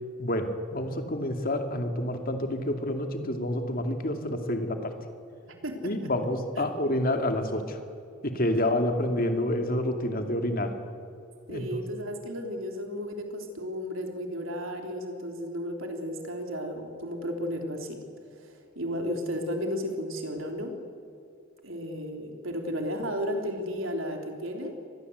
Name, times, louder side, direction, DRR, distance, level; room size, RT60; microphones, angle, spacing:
voice 1, 0.2-4.9 5.8-7.8 8.2-10.7 11.5-11.8, left 1 dB, 45° left, 5 dB, 2.5 m, -28 dB
voice 2, 5.5-6.1 6.6-6.7 8.5-8.6 11.5-18.0 18.4-20.8 21.6-24.8, equal, 75° right, 4 dB, 3.5 m, -34 dB
24.5 x 20.5 x 8.1 m, 2.4 s
head